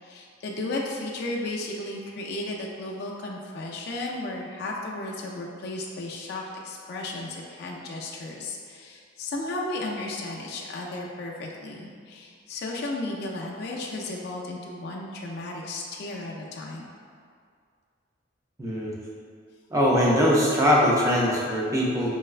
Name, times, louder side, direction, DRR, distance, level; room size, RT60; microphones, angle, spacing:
voice 1, 0.0-16.8, left 2 dB, 55° left, -2 dB, 0.3 m, -34 dB
voice 2, 18.6-18.9 19.7-22.2, equal, 15° right, -5 dB, 0.4 m, -21 dB
4.6 x 2.1 x 2.3 m, 2.2 s
head